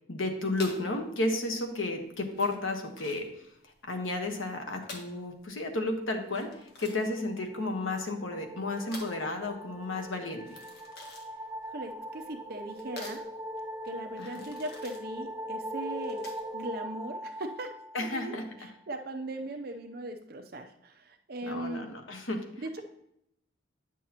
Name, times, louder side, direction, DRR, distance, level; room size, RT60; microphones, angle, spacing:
voice 1, 0.1-3.3 3.9-10.6 14.2-14.5 17.9-18.7 21.4-22.8, left 2 dB, 90° left, 4 dB, 1.2 m, -33 dB
sound 1, 0.6-16.6, left 3 dB, 55° left, 1.3 m, -49 dB
sound 2, 7.2-18.6, equal, 15° right, 1.5 m, -41 dB
voice 2, 11.7-13.2 13.8-16.2 16.5-17.7 18.0-18.3 18.9-21.9 22.6-22.8, right 1 dB, 50° right, 5 dB, 0.6 m, -39 dB
9.1 x 6.3 x 2.9 m, 0.77 s
head